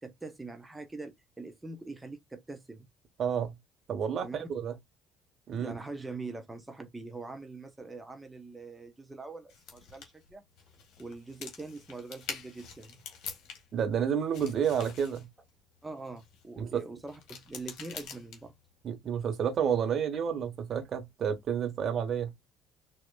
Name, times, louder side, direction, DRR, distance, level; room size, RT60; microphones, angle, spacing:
voice 1, 0.0-2.9 4.2-4.4 5.5-10.4 11.0-13.0 15.8-18.5, right 3 dB, 15° right, 0.9 m, -43 dB
voice 2, 3.2-3.6 3.9-4.7 5.5-5.8 13.7-15.3 16.6-16.8 18.8-22.3, right 8 dB, 45° right, 1.3 m, -30 dB
sound 1, 9.5-13.9 14.1-16.5 17.0-18.7, left 7 dB, 55° left, 1.8 m, -46 dB
6.1 x 2.8 x 2.4 m
figure-of-eight pair, 55°, 0 cm